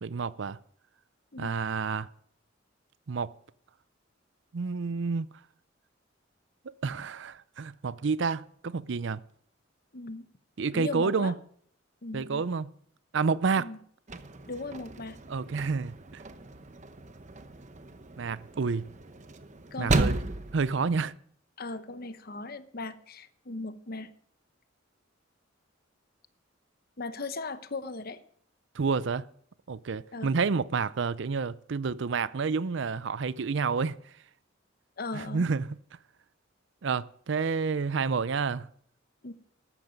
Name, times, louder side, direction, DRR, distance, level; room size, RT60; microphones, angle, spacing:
voice 1, 0.0-0.6 1.4-2.1 3.1-3.3 4.5-5.3 6.8-9.2 10.6-11.3 12.1-12.7 13.1-13.7 15.3-16.2 18.2-18.9 19.8-20.2 20.5-21.1 28.7-29.2 29.7-34.0 35.1-35.8 36.8-38.7, right 5 dB, 65° right, 0.5 m, -29 dB
voice 2, 9.9-10.3 10.7-11.3 12.0-12.4 13.6-13.8 14.5-15.2 19.7-20.1 21.6-24.1 27.0-28.2 30.1-30.3 35.0-35.5 39.2-39.3, left 3 dB, 50° left, 0.9 m, -38 dB
sound 1, 14.1-21.0, right 2 dB, 40° right, 0.9 m, -34 dB
14.0 x 12.0 x 5.2 m
head